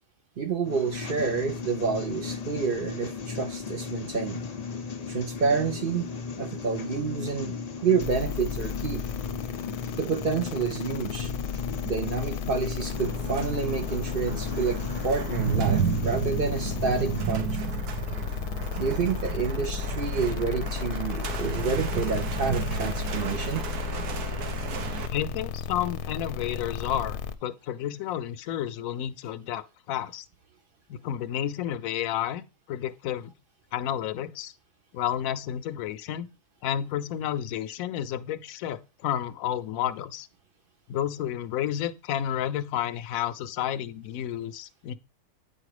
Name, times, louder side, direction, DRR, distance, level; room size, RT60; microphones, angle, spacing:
voice 1, 0.4-4.4 5.1-6.1 6.4-9.0 10.0-11.3 11.8-17.5 18.8-23.7, right 5 dB, 50° right, 0.7 m, -29 dB
sound 1, 0.6-17.2, left 5 dB, 45° left, 0.5 m, -36 dB
sound 2, 8.0-27.3, left 8 dB, 90° left, 1.2 m, -34 dB
sound 3, 12.8-25.1, right 7 dB, 80° right, 1.4 m, -32 dB
voice 2, 25.1-30.2 30.9-33.3 33.7-34.5 34.9-36.3 36.6-40.3 40.9-44.9, left 10 dB, 70° left, 1.0 m, -31 dB
9.1 x 4.3 x 4.9 m
omnidirectional pair, 1.6 m